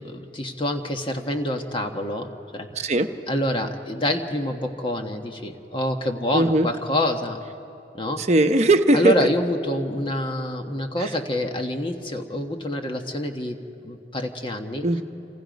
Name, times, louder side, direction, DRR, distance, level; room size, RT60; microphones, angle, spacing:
voice 1, 0.0-3.0 3.3-7.4 7.9-8.2 8.9-13.6 13.8-14.9, left 1 dB, 30° left, 4 dB, 1.4 m, -27 dB
voice 2, 2.8-3.1 6.3-6.7 8.2-9.2 11.0-11.1 14.8-15.0, right 1 dB, 40° right, 7 dB, 0.9 m, -19 dB
28.5 x 27.5 x 5.3 m, 2.8 s
head